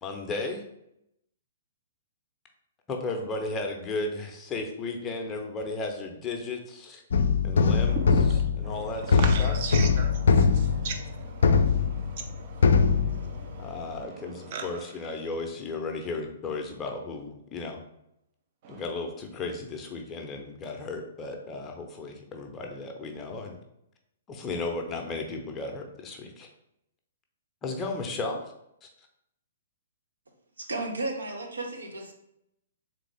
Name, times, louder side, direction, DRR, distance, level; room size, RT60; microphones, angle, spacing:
voice 1, 0.0-0.6 2.9-7.0 7.4-9.6 13.6-17.8 18.7-23.6 24.3-26.5 27.6-28.5 28.8-28.9, left 3 dB, 20° left, 3 dB, 0.6 m, -35 dB
sound 1, 7.1-12.4 12.6-13.7, left 5 dB, 60° left, 0.4 m, -22 dB
voice 2, 9.2-13.6 14.5-14.6 18.7-18.8, right 5 dB, 45° right, 4 dB, 0.6 m, -38 dB
voice 3, 30.6-32.1, right 2 dB, 75° right, 2 dB, 0.8 m, -33 dB
3.6 x 3.5 x 3.4 m, 0.80 s
figure-of-eight pair, 120°, 0 cm